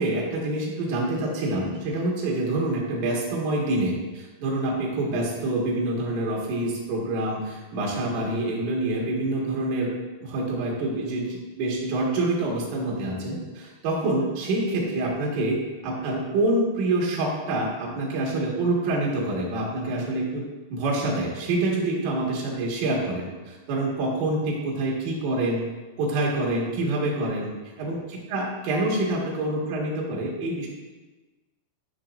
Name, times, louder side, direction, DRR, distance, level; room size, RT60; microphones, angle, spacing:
voice 1, 0.0-9.9 10.2-20.4 20.7-25.6 26.0-27.5 27.8-30.7, right 2 dB, 85° right, -3 dB, 4.3 m, -26 dB
16.5 x 6.0 x 2.5 m, 1.2 s
omnidirectional pair, 5.6 m